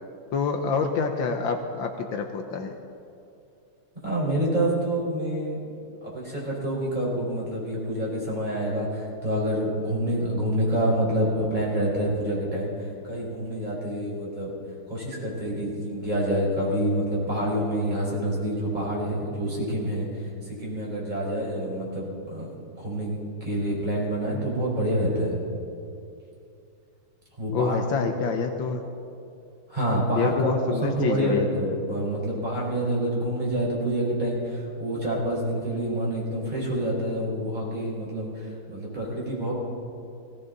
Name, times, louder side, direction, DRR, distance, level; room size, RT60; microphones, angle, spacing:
voice 1, 0.3-2.8 27.5-28.9 30.1-31.5, left 5 dB, 70° left, 5 dB, 1.5 m, -27 dB
voice 2, 4.0-5.6 6.0-12.7 13.0-14.5 14.9-25.3 27.4-28.3 29.7-39.5, right 1 dB, 20° right, -5 dB, 4.9 m, -27 dB
18.5 x 17.0 x 4.0 m, 2.6 s
omnidirectional pair, 2.3 m